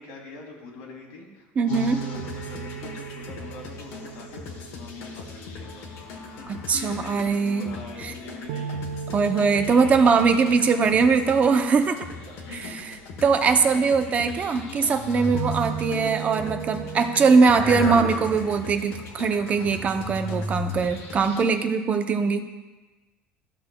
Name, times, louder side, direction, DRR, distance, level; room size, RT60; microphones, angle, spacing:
voice 1, 0.0-5.9 6.4-9.1 10.7-11.0 12.3-12.8 13.4-13.9 14.6-15.2 15.9-16.3, left 3 dB, 85° left, -1 dB, 2.2 m, -42 dB
voice 2, 1.6-2.0 6.5-7.8 8.0-8.1 9.1-12.0 12.7-12.8 13.2-22.4, right 5 dB, 30° right, 7 dB, 0.5 m, -21 dB
sound 1, 1.7-21.4, left 4 dB, 70° left, 1.5 m, -41 dB
sound 2, 1.7-5.8 8.5-12.7 15.3-17.4, right 8 dB, 85° right, 0.4 m, -36 dB
sound 3, 14.7-16.1 17.0-18.7 19.4-20.9, left 2 dB, 50° left, 1.6 m, -33 dB
14.0 x 6.7 x 2.2 m, 1.2 s
cardioid pair, 140°, 5 cm